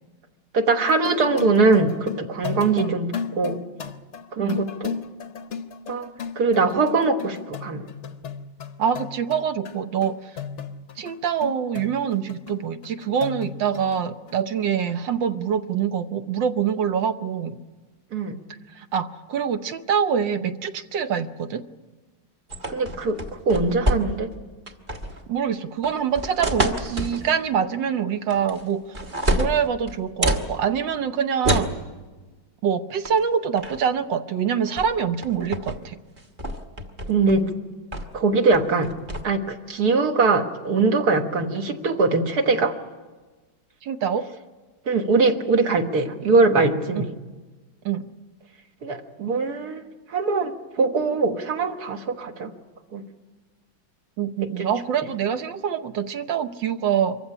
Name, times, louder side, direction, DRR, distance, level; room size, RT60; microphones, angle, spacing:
voice 1, 0.5-3.1 3.3-3.6 4.3-4.9 5.9-6.1 6.4-7.8 18.1-18.3 22.7-23.2 23.5-24.3 37.1-37.4 38.1-38.9 39.2-42.7 44.9-47.1 48.8-49.9 50.1-50.5 50.8-52.5 52.9-53.0 54.6-54.7, right 3 dB, 55° right, 6 dB, 1.9 m, -21 dB
sound 1, 0.8-11.2 11.4-14.0 14.3-14.4, left 6 dB, 50° left, 0.9 m, -35 dB
voice 2, 8.8-10.3 11.0-17.6 18.7-21.6 25.3-29.0 29.4-31.7 32.6-36.0 43.8-44.3 47.8-48.1 54.2-57.2, right 7 dB, 70° right, 10 dB, 1.6 m, -25 dB
sound 2, 22.5-24.3 24.7-25.2 25.8-27.3 28.3-28.7 28.9-30.5 31.4-31.8 33.0-33.2 33.6-33.9 34.8-34.9 35.2-35.8 36.2-37.4 37.9-38.2 38.5-39.2, right 1 dB, 25° right, 1.5 m, -27 dB
24.5 x 15.0 x 9.8 m, 1.3 s
omnidirectional pair, 2.2 m